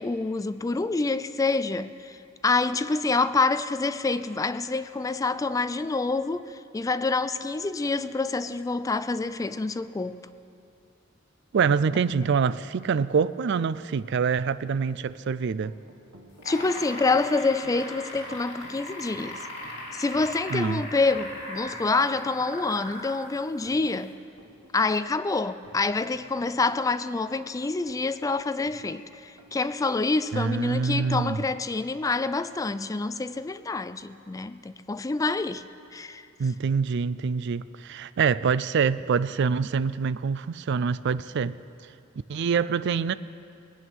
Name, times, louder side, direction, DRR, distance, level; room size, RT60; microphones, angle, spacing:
voice 1, 0.0-2.2 2.4-10.2 16.4-19.4 19.9-24.1 24.7-35.6 35.9-36.3, left 3 dB, 15° left, 0.3 m, -27 dB
voice 2, 11.5-15.7 20.5-20.8 30.3-31.4 36.4-41.6 42.3-43.1, right 5 dB, 60° right, 0.4 m, -25 dB
sound 1, 15.6-32.4, right 1 dB, 90° right, 1.4 m, -54 dB
sound 2, 16.3-23.2 24.1-24.2, left 1 dB, 60° left, 3.3 m, -38 dB
20.5 x 9.2 x 6.1 m
head